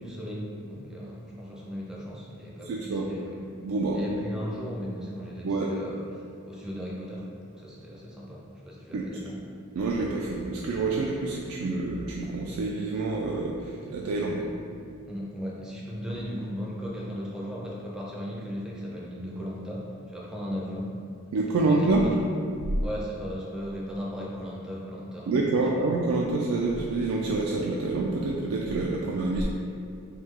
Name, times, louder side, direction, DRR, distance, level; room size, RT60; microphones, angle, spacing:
voice 1, 0.0-3.2 3.9-6.0 6.4-9.4 15.1-21.0 21.6-22.1 22.8-25.7, equal, 5° right, -4 dB, 0.4 m, -36 dB
voice 2, 2.6-3.0 3.6-4.0 5.4-5.7 8.9-9.0 9.8-14.5 21.3-22.1 25.3-29.4, right 3 dB, 80° right, -2 dB, 0.3 m, -27 dB
3.2 x 2.7 x 3.6 m, 2.4 s
head